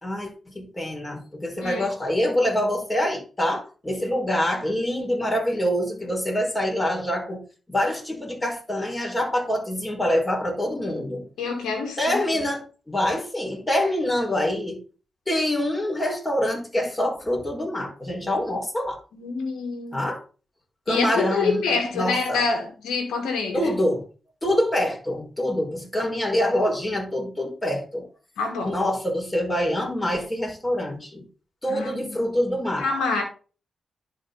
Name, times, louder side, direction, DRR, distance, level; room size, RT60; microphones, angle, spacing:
voice 1, 0.0-7.4 7.7-11.2 12.0-14.8 15.3-19.0 19.9-20.2 20.9-21.7 21.9-22.4 23.5-24.0 24.4-28.1 28.6-31.2 31.6-32.9, left 1 dB, 20° left, 5.0 m, -25 dB
voice 2, 1.5-1.9 11.4-12.2 19.1-20.0 20.9-23.7 28.4-28.7 31.7-32.2 32.8-33.2, left 4 dB, 85° left, 1.8 m, -26 dB
11.0 x 4.4 x 4.0 m
supercardioid pair, 40°, 0 cm